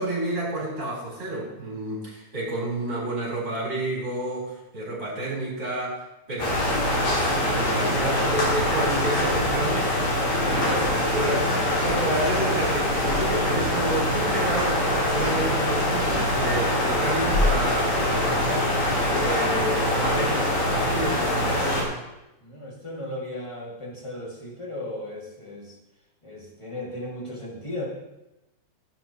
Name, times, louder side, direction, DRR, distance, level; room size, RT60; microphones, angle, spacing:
voice 1, 0.0-6.0 6.3-6.6 7.1-9.9 10.4-18.7 19.2-21.7, right 1 dB, 35° right, -5 dB, 4.7 m, -30 dB
sound 1, 6.4-21.8, left 1 dB, 80° left, 4.7 m, -24 dB
voice 2, 10.3-10.9 22.4-25.7 26.2-27.8, left 1 dB, 10° left, -3 dB, 1.8 m, -36 dB
17.0 x 9.0 x 3.1 m, 0.94 s
omnidirectional pair, 3.6 m